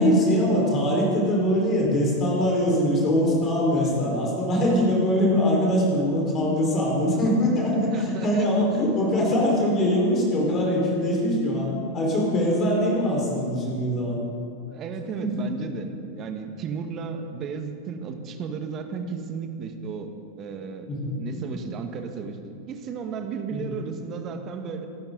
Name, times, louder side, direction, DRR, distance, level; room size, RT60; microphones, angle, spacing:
voice 1, 0.0-14.2 15.2-15.5 20.9-21.4 23.5-23.7, equal, 30° left, -2 dB, 4.8 m, -22 dB
voice 2, 3.8-4.2 7.9-8.5 11.4-11.5 14.7-20.1 20.4-20.9 21.2-24.9, right 5 dB, 30° right, 6 dB, 1.6 m, -34 dB
25.5 x 13.5 x 4.0 m, 2.4 s
figure-of-eight pair, 90°, 0 cm